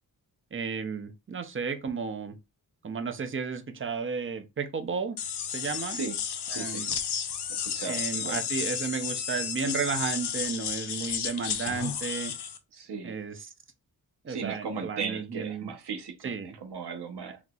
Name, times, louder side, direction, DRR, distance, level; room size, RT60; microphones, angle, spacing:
voice 1, 0.5-2.3 2.8-5.2 5.5-6.0 6.5-6.9 7.8-12.3 13.0-13.5 14.2-15.7 16.2-16.5, right 5 dB, 35° right, 0.5 m, -33 dB
sound 1, 5.2-12.6, left 8 dB, 85° left, 0.6 m, -32 dB
voice 2, 6.5-7.0 7.5-8.4 12.7-13.2 14.3-17.4, right 5 dB, 90° right, 0.7 m, -37 dB
4.0 x 2.8 x 2.3 m
wide cardioid pair, 150°, 39 cm